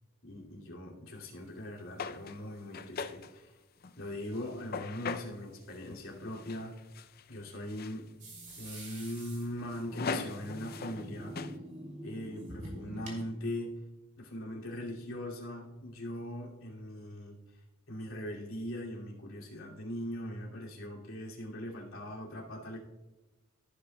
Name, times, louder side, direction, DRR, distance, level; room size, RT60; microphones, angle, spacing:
voice 1, 0.2-3.6 4.0-6.7 7.3-8.1 8.6-11.3 12.0-13.7 14.2-17.4 17.9-22.8, left 1 dB, 80° left, -3 dB, 2.6 m, -40 dB
sound 1, 2.0-3.4 3.8-5.3 5.7-6.1 6.3-7.4 7.7-8.0 8.5-11.1 11.4-11.6, left 5 dB, 50° left, 0.5 m, -40 dB
sound 2, 8.2-13.3, right 1 dB, 40° right, 2.7 m, -46 dB
15.0 x 8.2 x 2.3 m, 1.2 s
head